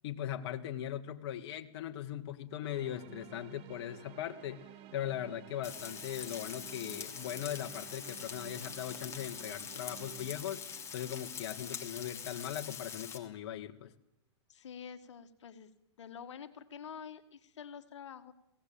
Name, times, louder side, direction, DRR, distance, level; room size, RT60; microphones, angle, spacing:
voice 1, 0.0-10.6 10.9-13.9, left 11 dB, 60° left, 5 dB, 1.7 m, -39 dB
sound 1, 2.6-12.6, right 12 dB, 35° right, 1.6 m, -54 dB
Frying (food), 5.6-13.2, left 7 dB, 20° left, 2.7 m, -44 dB
voice 2, 14.5-15.7 16.0-18.3, left 7 dB, 80° left, 8 dB, 1.8 m, -48 dB
23.0 x 17.5 x 8.8 m, 0.81 s
hypercardioid pair, 125°, 15 cm